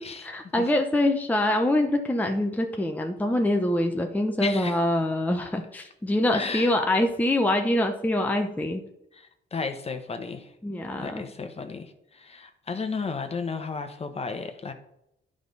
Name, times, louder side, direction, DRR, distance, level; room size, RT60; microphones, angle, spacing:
voice 1, 0.0-8.8 10.6-11.3, left 1 dB, 10° left, 3 dB, 0.8 m, -25 dB
voice 2, 4.4-4.8 6.3-6.7 9.1-10.5 10.9-14.7, left 4 dB, 30° left, 7 dB, 1.0 m, -34 dB
10.5 x 5.0 x 4.0 m, 0.82 s
cardioid pair, 90°, 20 cm